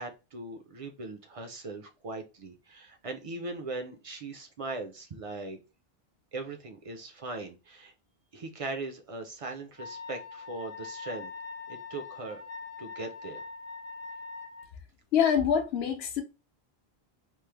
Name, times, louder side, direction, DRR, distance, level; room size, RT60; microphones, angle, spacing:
voice 1, 0.0-5.6 6.3-7.9 8.3-11.3 11.7-12.4 12.8-13.4, right 3 dB, 50° right, 0.4 m, -39 dB
Wind instrument woodwind instrument, 9.8-14.7, left 4 dB, 45° left, 0.7 m, -42 dB
voice 2, 15.1-16.2, left 8 dB, 75° left, 0.9 m, -25 dB
3.1 x 2.0 x 3.2 m
omnidirectional pair, 1.1 m